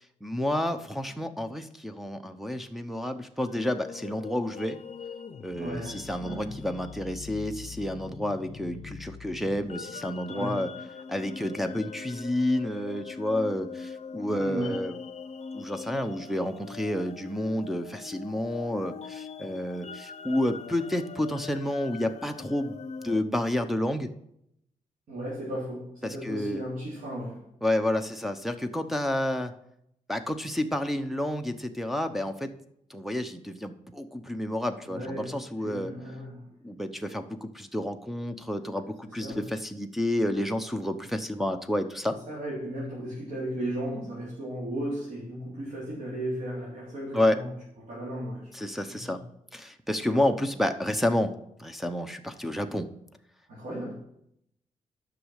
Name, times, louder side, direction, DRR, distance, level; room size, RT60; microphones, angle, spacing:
voice 1, 0.2-4.8 5.4-10.7 11.1-14.9 15.5-22.8 23.0-24.1 26.0-26.6 27.6-29.5 30.1-32.5 32.9-35.9 36.6-42.2 47.1-47.4 48.5-49.2 49.5-51.3 51.6-52.9, left 1 dB, ahead, 4 dB, 0.8 m, -30 dB
sound 1, 3.4-23.2, left 6 dB, 55° left, 0.7 m, -42 dB
voice 2, 5.6-6.6 10.3-10.8 14.3-14.9 25.1-27.5 34.8-36.8 39.1-39.4 42.1-47.5 47.8-48.5 48.9-49.2 50.0-50.2 53.5-53.9, right 1 dB, 85° right, -7 dB, 3.7 m, -35 dB
11.5 x 6.3 x 6.5 m, 0.75 s
cardioid pair, 110°, 14 cm